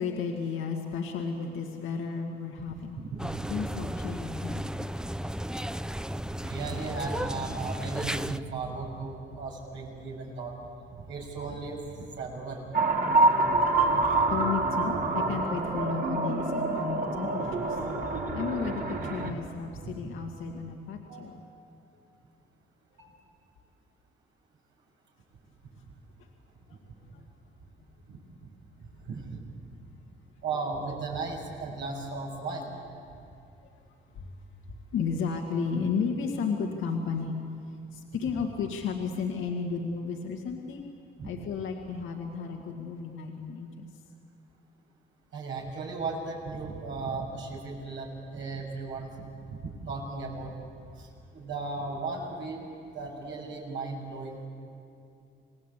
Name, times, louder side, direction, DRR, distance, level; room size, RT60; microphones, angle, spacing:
voice 1, 0.0-3.0 3.5-4.7 14.3-17.8 18.1-21.4 26.7-27.2 28.1-28.2 34.2-34.3 34.9-37.3 37.9-40.9 41.2-43.9, left 5 dB, 85° left, 1 dB, 2.0 m, -33 dB
voice 2, 3.0-3.4 6.4-10.6 10.9-12.9 19.2-19.3 19.8-19.9 21.1-21.5 23.0-23.1 28.1-28.2 28.8-29.4 30.4-32.7 41.2-41.3 45.3-49.1 49.5-50.5 51.0-51.1 51.3-52.6 52.9-54.4, right 3 dB, 75° right, -1 dB, 6.7 m, -36 dB
sound 1, 3.2-8.4, equal, 5° right, 0.6 m, -34 dB
sound 2, 12.7-19.3, right 2 dB, 45° right, 2.7 m, -26 dB
27.5 x 19.0 x 8.3 m, 2.5 s
cardioid pair, 90°, 20 cm